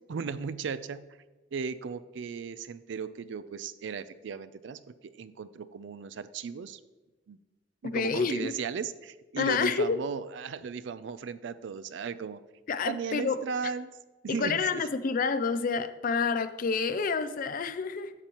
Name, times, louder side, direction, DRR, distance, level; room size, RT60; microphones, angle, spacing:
voice 1, 0.1-1.1 1.5-6.8 7.3-7.4 7.8-12.4 12.8-13.9 14.2-14.8, right 6 dB, 70° right, 15 dB, 0.4 m, -36 dB
voice 2, 7.8-8.5 9.4-10.0 12.7-13.4 14.3-18.1, left 5 dB, 45° left, 13 dB, 0.4 m, -28 dB
9.8 x 6.9 x 3.0 m, 1.2 s
head